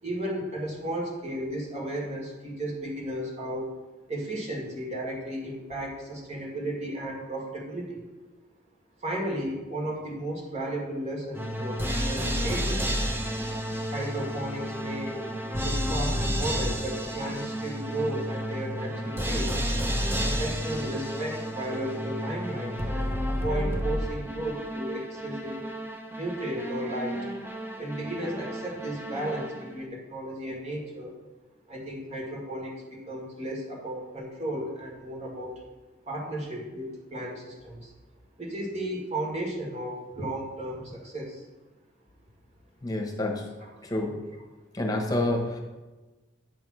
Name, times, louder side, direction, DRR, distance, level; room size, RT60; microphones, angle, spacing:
voice 1, 0.0-3.7 4.1-8.0 9.0-12.9 13.8-15.2 15.6-19.6 20.2-25.6 26.1-27.3 27.8-31.2 31.7-35.6 36.1-37.9 38.4-41.5 43.6-43.7, right 1 dB, 35° right, -2 dB, 1.8 m, -34 dB
sound 1, 11.3-29.8, equal, 10° right, 0.8 m, -31 dB
voice 2, 42.8-43.5 43.8-44.2 44.7-45.6, left 1 dB, 20° left, 0 dB, 1.2 m, -28 dB
8.9 x 3.7 x 6.1 m, 1.2 s
head